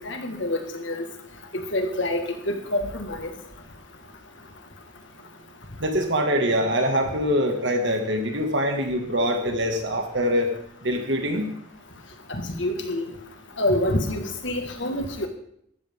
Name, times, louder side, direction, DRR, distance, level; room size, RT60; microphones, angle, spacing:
voice 1, 0.0-1.1 1.5-3.3 12.3-13.0 13.6-15.3, left 1 dB, 60° left, 5 dB, 1.9 m, -27 dB
voice 2, 5.8-10.5 10.8-11.5, equal, 55° right, 3 dB, 2.2 m, -24 dB
14.5 x 12.5 x 3.8 m, 0.69 s
head